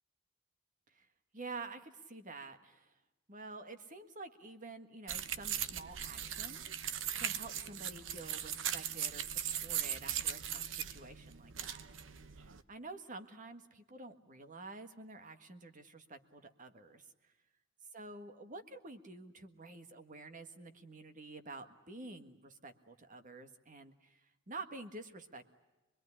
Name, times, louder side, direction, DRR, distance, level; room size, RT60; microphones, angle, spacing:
voice 1, 1.3-2.9 3.3-11.8 12.1-17.3 17.9-25.5, right 3 dB, 40° right, 8 dB, 1.7 m, -49 dB
sound 1, 5.1-12.6, right 9 dB, 70° right, 1.0 m, -39 dB
25.5 x 21.5 x 9.9 m, 1.1 s
head